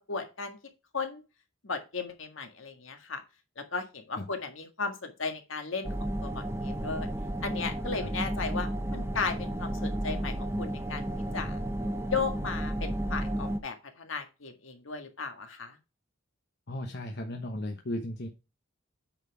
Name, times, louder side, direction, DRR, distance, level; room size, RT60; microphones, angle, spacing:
voice 1, 0.1-0.6 0.9-1.2 1.6-3.2 3.6-5.9 6.2-7.1 7.4-11.0 11.3-11.6 12.1-15.8, left 4 dB, 70° left, 5 dB, 1.7 m, -35 dB
sound 1, 5.8-13.6, right 1 dB, 15° right, 0.8 m, -32 dB
voice 2, 16.7-18.3, left 1 dB, 55° left, 3 dB, 1.0 m, -35 dB
8.8 x 4.3 x 4.8 m, 0.29 s
head